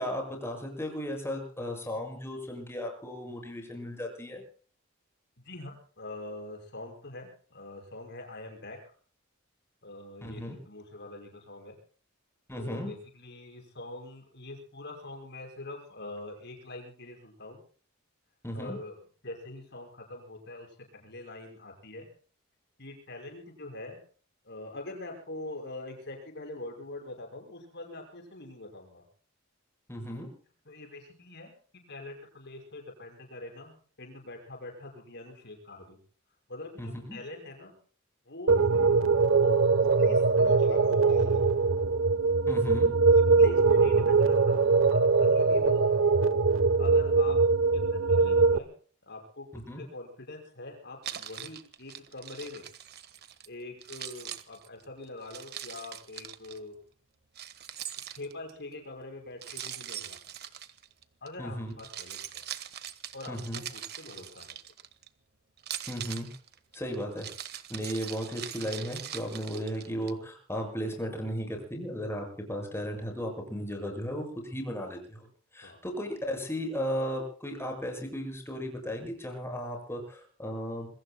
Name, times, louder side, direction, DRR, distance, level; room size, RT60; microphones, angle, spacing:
voice 1, 0.0-4.4 10.2-10.6 12.5-12.9 18.4-18.8 29.9-30.3 36.8-37.2 42.5-42.9 49.5-49.8 61.4-61.7 63.3-63.6 65.9-66.3 66.7-67.3 67.7-75.3 75.5-80.9, equal, 15° left, 3 dB, 6.7 m, -35 dB
voice 2, 5.4-8.8 9.8-11.8 12.5-17.6 18.5-19.0 19.2-22.1 22.8-24.0 24.4-29.0 30.6-31.5 31.9-36.0 36.5-37.8 38.3-38.7 39.3-41.5 43.1-44.6 44.9-45.9 46.8-47.4 47.7-48.7 49.1-52.7 53.5-56.8 58.1-60.2 61.2-62.4 63.1-64.6 75.6-75.8, left 2 dB, 55° left, 2 dB, 5.9 m, -43 dB
sound 1, 38.5-48.6, right 4 dB, 75° right, 1.0 m, -22 dB
Keys jangling, 51.0-53.5 53.8-56.6 57.4-58.6 59.4-61.3 61.7-65.1 65.6-70.1, right 10 dB, 50° right, 1.4 m, -42 dB
27.0 x 23.0 x 2.2 m, 0.43 s
head